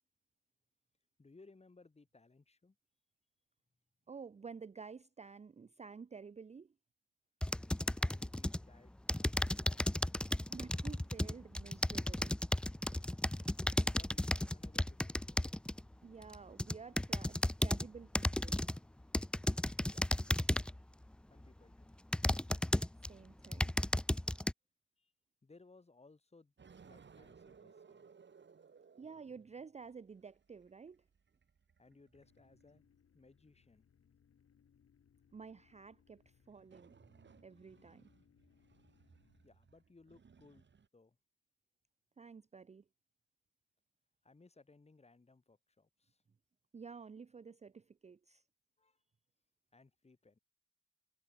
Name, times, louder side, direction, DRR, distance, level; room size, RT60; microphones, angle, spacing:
voice 1, 1.2-2.8 8.0-10.0 13.7-15.6 19.8-20.8 21.3-22.0 25.0-25.1 25.4-26.5 26.8-28.1 31.8-32.8 33.1-33.9 39.4-40.7 40.9-41.2 44.2-46.2 48.8-49.0 49.7-50.4, left 3 dB, 20° left, 3.6 m, -63 dB
voice 2, 4.1-6.7 10.5-12.4 16.0-18.6 23.1-23.7 29.0-31.0 35.3-37.0 37.4-38.1 42.2-42.8 46.7-48.4, right 5 dB, 20° right, 0.6 m, -51 dB
sound 1, 7.4-8.6 9.1-15.8 16.3-17.9 18.2-18.8 19.1-20.8 21.4-21.5 22.1-23.1 23.4-24.5, left 1 dB, 5° left, 0.3 m, -34 dB
sound 2, 26.6-32.9 36.4-40.9, right 6 dB, 40° right, 3.4 m, -63 dB
sound 3, 32.1-39.5, left 7 dB, 50° left, 5.8 m, -71 dB
cardioid pair, 90°, 30 cm